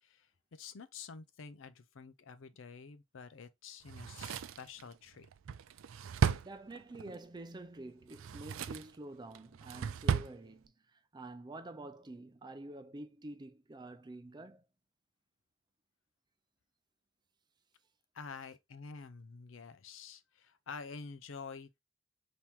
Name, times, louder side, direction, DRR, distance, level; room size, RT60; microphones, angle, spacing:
voice 1, 0.0-5.3 18.1-21.8, left 5 dB, 75° left, 0.5 m, -49 dB
Drawer open or close, 3.9-7.2 8.0-9.0 9.3-10.4 10.7-10.8, right 6 dB, 90° right, 0.4 m, -35 dB
voice 2, 6.4-14.7, right 2 dB, 20° right, 0.5 m, -48 dB
4.4 x 3.0 x 3.5 m
head